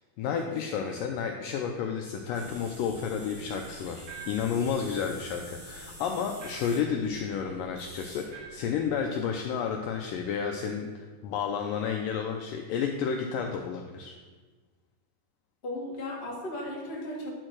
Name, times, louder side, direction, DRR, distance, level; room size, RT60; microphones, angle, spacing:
voice 1, 0.2-14.1, left 7 dB, 85° left, 3 dB, 1.9 m, -31 dB
sound 1, 2.3-9.0, right 1 dB, 40° right, 2.0 m, -47 dB
sound 2, 4.1-4.6 6.4-6.9 8.3-8.7, right 5 dB, 60° right, 1.0 m, -45 dB
voice 2, 15.6-17.3, left 1 dB, 25° left, -4 dB, 1.2 m, -36 dB
10.5 x 4.5 x 6.2 m, 1.4 s
omnidirectional pair, 4.5 m